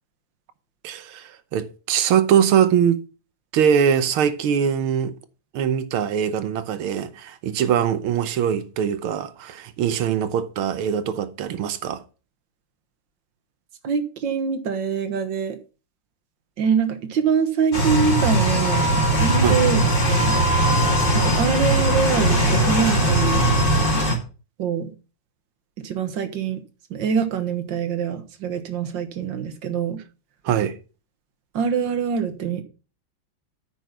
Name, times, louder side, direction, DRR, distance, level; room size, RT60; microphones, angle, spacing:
voice 1, 0.8-3.0 3.5-5.2 5.5-12.0 19.4-19.6 30.5-30.8, right 8 dB, 85° right, 1.8 m, -22 dB
voice 2, 13.8-15.6 16.6-20.3 21.1-23.4 24.6-24.9 25.8-26.6 26.9-30.0 31.5-32.6, right 6 dB, 65° right, 1.9 m, -24 dB
sound 1, 17.7-24.1, right 1 dB, 25° left, 2.4 m, -19 dB
9.2 x 5.7 x 5.9 m
omnidirectional pair, 2.3 m